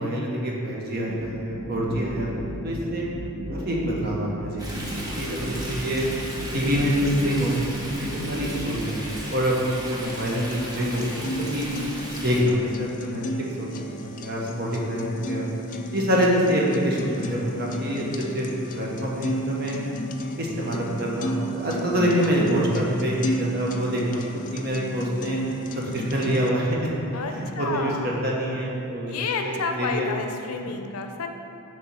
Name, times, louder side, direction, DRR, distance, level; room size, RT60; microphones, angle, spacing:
voice 1, 0.0-2.4 2.6-3.1 3.5-6.1 6.5-11.7 12.2-13.2 13.6-15.5 15.9-18.0 18.3-18.5 18.7-19.8 20.4-24.2 24.5-25.4 25.8-30.1, equal, 45° right, -3 dB, 1.1 m, -26 dB
sound 1, 1.1-9.1, equal, 70° right, 1.0 m, -34 dB
Stream, 4.6-12.4, equal, 15° right, 0.8 m, -35 dB
sound 2, 10.5-26.5, equal, 35° left, 0.3 m, -32 dB
voice 2, 27.1-28.2 29.1-31.3, left 4 dB, 90° left, 5 dB, 0.6 m, -30 dB
6.9 x 3.5 x 6.1 m, 2.7 s
head